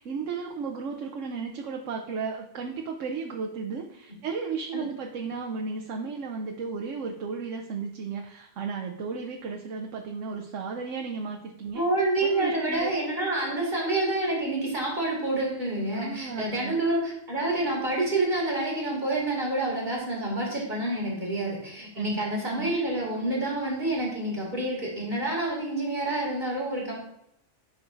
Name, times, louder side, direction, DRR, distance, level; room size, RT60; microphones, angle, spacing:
voice 1, 0.0-11.8 12.2-12.9 15.9-16.7 22.0-22.1 22.6-22.7, right 5 dB, 90° right, 2 dB, 1.1 m, -34 dB
voice 2, 11.7-26.9, right 2 dB, 40° right, -3 dB, 2.5 m, -28 dB
9.9 x 5.8 x 2.5 m, 0.81 s
omnidirectional pair, 1.3 m